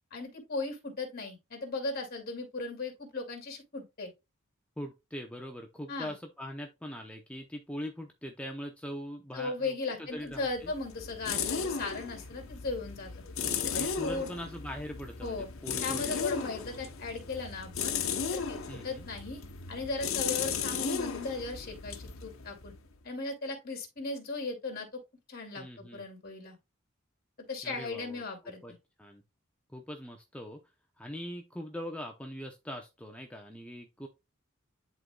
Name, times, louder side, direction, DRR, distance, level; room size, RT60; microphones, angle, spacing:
voice 1, 0.1-4.1 5.9-6.1 9.3-13.1 13.6-14.3 15.2-15.5 15.8-18.0 18.3-19.4 19.7-22.7 23.0-24.9 25.3-26.6 27.5-28.6, left 3 dB, 50° left, 2.5 m, -37 dB
voice 2, 4.8-10.7 13.4-16.5 18.7-19.1 25.6-26.0 27.6-28.7 29.0-29.2 29.7-30.6 31.0-34.1, equal, 5° left, 0.7 m, -42 dB
sound 1, 10.3-23.0, left 6 dB, 80° left, 0.9 m, -36 dB
11.0 x 3.9 x 2.3 m
head